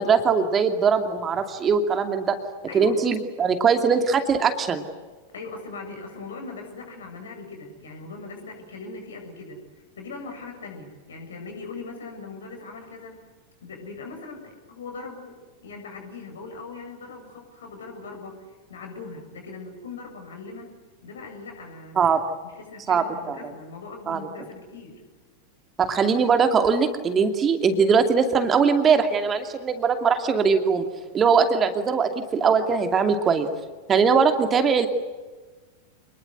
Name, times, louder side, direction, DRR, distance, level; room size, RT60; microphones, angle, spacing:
voice 1, 0.0-2.4 2.7-4.8 22.0-22.2 22.9-23.4 24.1-24.2 25.8-30.8 31.1-33.5 33.9-34.9, right 5 dB, 25° right, 7 dB, 2.6 m, -21 dB
voice 2, 2.7-3.0 3.5-3.7 5.3-9.6 10.0-13.2 13.6-18.4 18.7-20.7 21.0-22.1 22.4-25.0, left 3 dB, 65° left, 4 dB, 7.6 m, -40 dB
28.0 x 21.5 x 9.4 m, 1.3 s
figure-of-eight pair, 90°, 0 cm